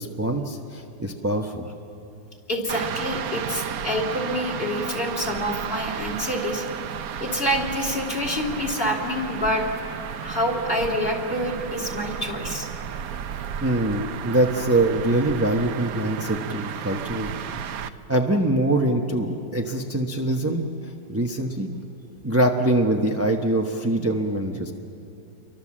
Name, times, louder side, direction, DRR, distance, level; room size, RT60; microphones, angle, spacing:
voice 1, 0.0-1.7 10.2-10.3 13.6-17.3 18.1-21.8 22.2-24.7, right 1 dB, 10° right, 1 dB, 0.8 m, -24 dB
voice 2, 2.5-6.6 7.2-9.7 10.2-12.7, equal, 30° left, 0 dB, 3.3 m, -27 dB
sound 1, 2.7-17.9, right 8 dB, 60° right, 1.0 m, -33 dB
29.0 x 24.0 x 7.5 m, 2.7 s
omnidirectional pair, 2.1 m